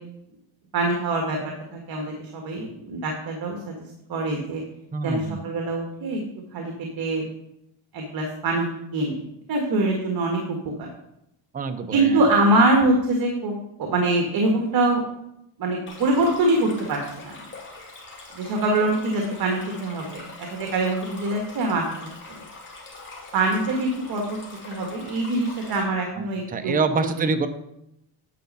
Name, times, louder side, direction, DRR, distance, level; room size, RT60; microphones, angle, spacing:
voice 1, 0.7-1.4 1.7-4.6 5.0-6.2 6.5-7.2 7.9-8.6 8.9-9.2 9.5-10.9 11.9-13.5 13.8-15.0 15.6-17.0 17.2-17.3 18.3-20.2 20.5-21.9 23.3-24.4 24.7-27.1, right 2 dB, 50° right, 2 dB, 1.6 m, -24 dB
voice 2, 4.9-5.4 11.5-12.2 26.2-27.5, right 4 dB, 20° right, 8 dB, 0.7 m, -26 dB
Stream, 15.9-25.8, left 3 dB, 25° left, 2.6 m, -42 dB
9.3 x 5.2 x 5.4 m, 0.82 s
cardioid pair, 130°, 46 cm